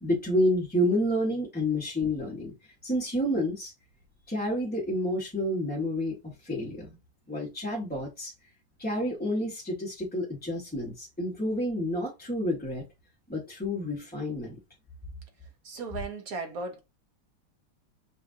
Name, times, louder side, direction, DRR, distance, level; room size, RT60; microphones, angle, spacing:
voice 1, 0.0-2.5 2.8-3.7 4.3-6.9 7.3-8.3 8.8-12.8 13.3-14.6, left 1 dB, 5° left, 0.7 m, -29 dB
voice 2, 15.6-16.8, right 3 dB, 60° right, 0.9 m, -36 dB
6.7 x 2.4 x 2.5 m
omnidirectional pair, 2.3 m